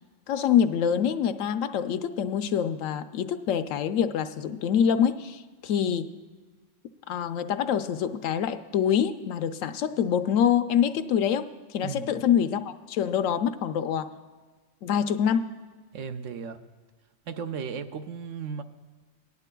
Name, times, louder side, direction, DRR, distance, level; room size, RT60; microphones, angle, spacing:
voice 1, 0.3-6.1 7.1-14.1 14.8-15.5, left 8 dB, 90° left, 10 dB, 1.0 m, -25 dB
voice 2, 11.8-12.3 15.9-16.6 17.3-18.6, right 6 dB, 75° right, 8 dB, 1.0 m, -35 dB
19.0 x 10.5 x 2.2 m, 1.4 s
omnidirectional pair, 1.3 m